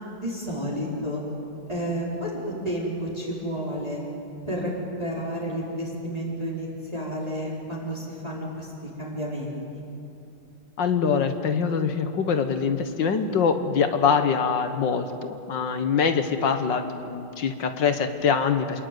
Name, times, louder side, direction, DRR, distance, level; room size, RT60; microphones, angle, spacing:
voice 1, 0.1-1.2 1.7-4.0 4.4-4.7 5.0-8.7 9.0-9.8, equal, 20° right, -5 dB, 4.5 m, -31 dB
voice 2, 10.8-18.9, left 6 dB, 70° left, 8 dB, 1.9 m, -24 dB
27.5 x 20.5 x 9.4 m, 2.8 s
omnidirectional pair, 2.1 m